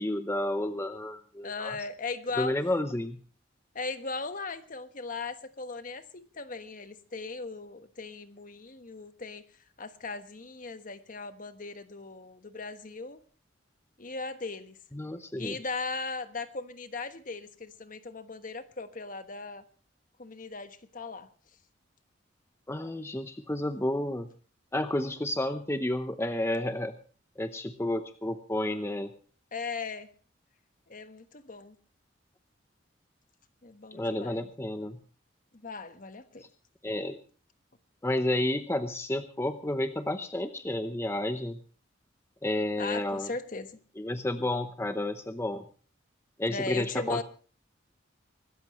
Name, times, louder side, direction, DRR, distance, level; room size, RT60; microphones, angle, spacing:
voice 1, 0.0-1.8 2.4-3.2 14.9-15.6 22.7-24.3 24.7-26.9 27.4-29.1 33.9-35.0 36.8-37.2 38.0-41.6 42.4-43.3 44.0-45.6 46.4-47.2, left 1 dB, 15° left, 9 dB, 0.8 m, -31 dB
voice 2, 1.4-2.5 3.7-9.4 9.8-13.2 14.0-14.8 15.4-19.6 20.2-21.3 29.5-30.1 30.9-31.8 33.6-34.5 35.5-36.4 42.8-43.8 46.5-47.2, left 4 dB, 45° left, 10 dB, 1.3 m, -38 dB
24.5 x 13.5 x 3.1 m, 0.39 s
head